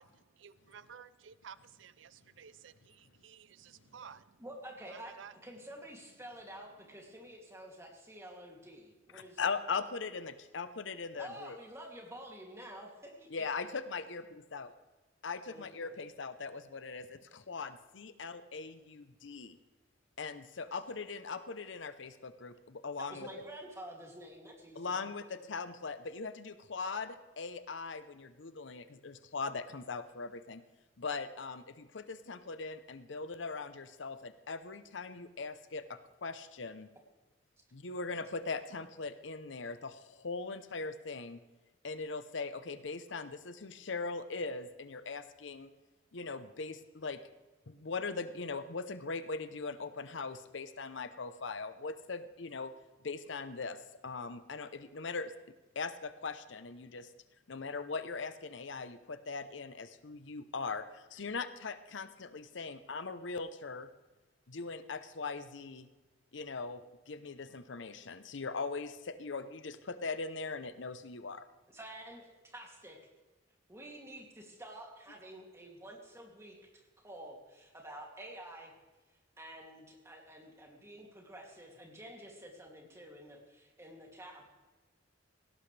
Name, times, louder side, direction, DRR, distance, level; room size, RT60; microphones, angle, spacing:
voice 1, 0.0-4.4 4.9-5.3, right 7 dB, 75° right, 16 dB, 0.5 m, -54 dB
voice 2, 4.4-5.2 5.4-9.4 11.2-13.3 15.5-15.6 23.1-25.0 71.7-73.0 73.7-78.7 79.4-84.5, right 1 dB, 15° right, 0 dB, 2.6 m, -49 dB
voice 3, 9.1-11.6 13.3-14.2 14.5-14.7 15.2-19.6 20.2-23.3 24.8-30.6 31.0-36.9 37.7-41.4 41.8-45.7 46.1-47.2 47.7-52.7 53.0-55.3 55.8-57.1 57.5-63.9 64.5-65.9 66.3-71.5, left 4 dB, 70° left, 12 dB, 0.8 m, -40 dB
18.0 x 17.5 x 3.3 m, 1.2 s
head